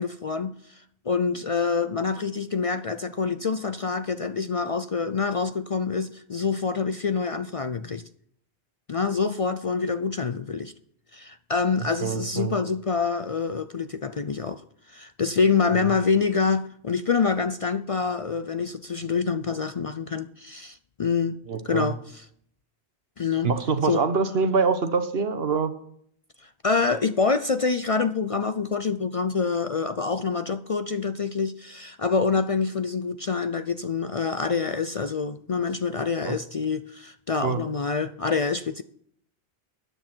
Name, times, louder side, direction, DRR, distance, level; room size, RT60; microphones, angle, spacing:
voice 1, 0.0-8.0 8.9-10.7 11.1-14.6 14.9-21.4 21.6-22.2 23.2-23.5 23.8-24.0 26.4-38.8, left 5 dB, 45° left, 0.5 m, -26 dB
voice 2, 12.0-12.6 15.7-15.9 21.5-21.9 23.4-25.7 36.2-36.4 37.4-37.6, right 5 dB, 75° right, 1.3 m, -25 dB
13.5 x 9.7 x 4.4 m
omnidirectional pair, 1.0 m